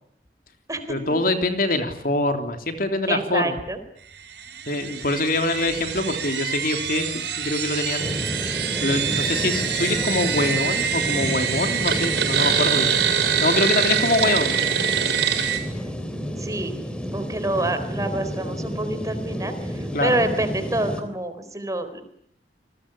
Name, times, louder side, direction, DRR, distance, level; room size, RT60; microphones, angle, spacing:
voice 1, 0.9-3.5 4.7-8.2 8.5-12.9 13.4-14.5 19.9-20.2, left 2 dB, 50° left, 6 dB, 3.1 m, -24 dB
voice 2, 3.1-3.8 16.4-16.8 17.1-22.0, right 1 dB, 20° right, 9 dB, 4.0 m, -27 dB
sound 1, 4.4-15.6, right 8 dB, 75° right, 7.4 m, -25 dB
sound 2, 8.0-21.0, equal, 5° left, 3.3 m, -31 dB
29.0 x 20.5 x 10.0 m, 0.69 s
head